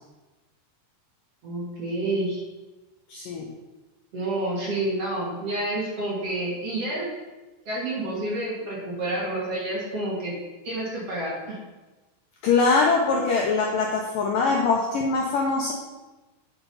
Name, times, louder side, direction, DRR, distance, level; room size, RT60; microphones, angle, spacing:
voice 1, 1.4-2.4 4.1-7.0 7.6-10.3 10.6-11.6, right 1 dB, 40° right, -6 dB, 3.1 m, -29 dB
voice 2, 3.1-3.5 12.4-15.7, left 4 dB, 75° left, -1 dB, 2.1 m, -22 dB
8.3 x 7.0 x 5.7 m, 1.2 s
omnidirectional pair, 4.9 m